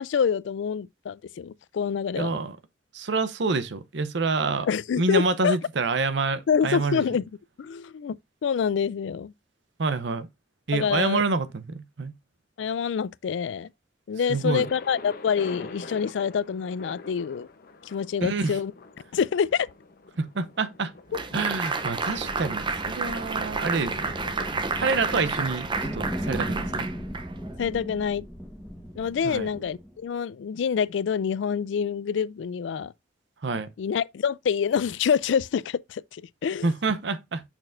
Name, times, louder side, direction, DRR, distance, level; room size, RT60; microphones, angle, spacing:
voice 1, 0.0-2.4 4.6-5.6 6.5-7.2 7.6-8.2 8.4-9.3 10.7-11.2 12.6-13.7 14.1-17.5 17.9-18.7 19.1-19.7 21.1-21.2 27.6-28.3 29.0-32.9 33.8-36.7, left 7 dB, 75° left, 0.3 m, -26 dB
voice 2, 2.2-2.6 2.9-4.7 5.0-7.0 9.8-10.3 10.7-12.1 14.3-14.7 18.2-18.5 20.2-20.9 21.3-24.1 24.8-26.9 29.2-29.5 33.4-33.7 36.6-37.4, right 3 dB, 65° right, 0.7 m, -27 dB
Thunder, 14.6-26.4, left 3 dB, 50° left, 0.8 m, -45 dB
sound 1, 21.1-27.6, right 4 dB, 25° right, 0.6 m, -31 dB
sound 2, 21.8-30.0, equal, ahead, 1.1 m, -37 dB
6.5 x 6.0 x 2.5 m
head